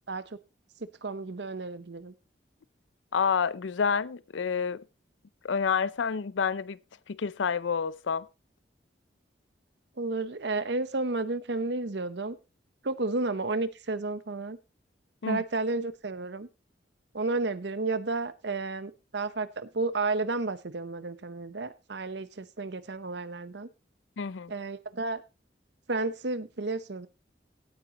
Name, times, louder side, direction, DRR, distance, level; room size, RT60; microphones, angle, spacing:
voice 1, 0.8-2.1 10.0-12.4 12.8-14.6 15.3-16.5 17.1-23.7 24.5-25.2 25.9-27.1, right 3 dB, 70° right, 0.9 m, -32 dB
voice 2, 3.1-4.8 5.4-6.8 7.1-8.3 15.2-15.4 24.2-24.5, left 6 dB, 85° left, 0.5 m, -28 dB
16.5 x 9.0 x 2.9 m
head